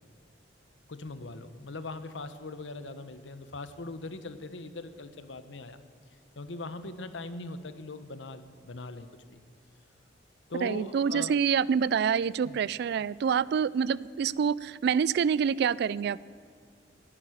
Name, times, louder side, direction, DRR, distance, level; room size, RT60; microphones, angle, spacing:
voice 1, 0.9-5.8 6.4-9.4 10.5-11.4 12.4-12.6, left 2 dB, 85° left, 11 dB, 1.0 m, -40 dB
voice 2, 10.6-16.2, right 7 dB, 60° right, 21 dB, 0.3 m, -27 dB
11.0 x 10.0 x 9.3 m, 2.1 s
head